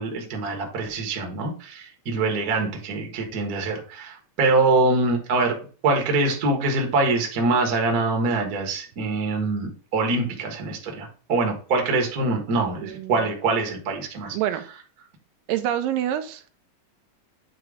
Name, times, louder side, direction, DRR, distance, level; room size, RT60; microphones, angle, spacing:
voice 1, 0.0-5.6 5.8-14.4, right 3 dB, 50° right, 2 dB, 1.1 m, -24 dB
voice 2, 12.8-13.2 14.3-14.6 15.5-16.5, right 11 dB, 80° right, 9 dB, 2.2 m, -27 dB
8.8 x 3.0 x 4.8 m, 0.39 s
omnidirectional pair, 4.1 m